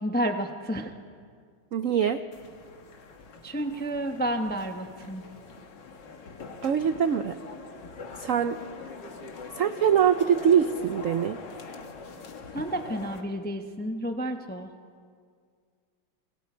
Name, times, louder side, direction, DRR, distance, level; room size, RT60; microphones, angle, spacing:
voice 1, 0.0-0.9 3.4-5.2 12.5-14.7, right 1 dB, 15° left, 5 dB, 0.4 m, -30 dB
voice 2, 1.7-2.2 6.6-7.4 8.2-8.6 9.6-11.4, right 8 dB, 75° right, 10 dB, 0.7 m, -23 dB
sound 1, 2.3-13.2, left 4 dB, 65° left, 2.1 m, -43 dB
29.5 x 21.5 x 4.4 m, 2.1 s
omnidirectional pair, 2.2 m